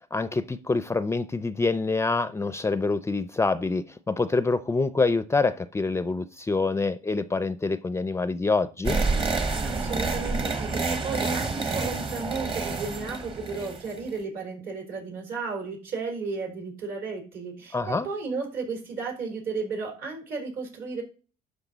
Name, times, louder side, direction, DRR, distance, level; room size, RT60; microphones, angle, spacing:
voice 1, 0.1-9.0 17.7-18.1, left 3 dB, 15° left, 0.4 m, -26 dB
sound 1, 8.8-14.1, right 3 dB, 30° right, 1.2 m, -28 dB
voice 2, 9.6-21.0, right 4 dB, 65° right, 4.2 m, -34 dB
11.5 x 5.5 x 4.0 m
cardioid pair, 110°, 17 cm